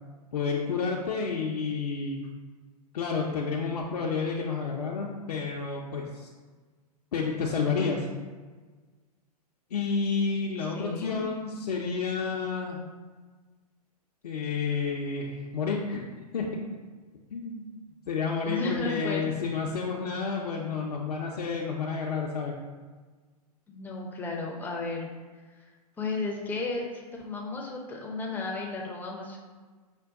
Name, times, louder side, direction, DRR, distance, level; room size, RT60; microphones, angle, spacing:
voice 1, 0.3-2.3 2.9-6.3 7.1-8.1 9.7-12.8 14.2-16.1 16.3-16.5 17.3-17.7 18.1-22.5, left 5 dB, 70° left, -2 dB, 0.5 m, -30 dB
voice 2, 10.6-11.2 18.5-19.2 23.7-25.1 26.0-29.4, left 3 dB, 10° left, -1 dB, 0.6 m, -34 dB
5.1 x 2.2 x 3.6 m, 1.4 s
figure-of-eight pair, 110°, 21 cm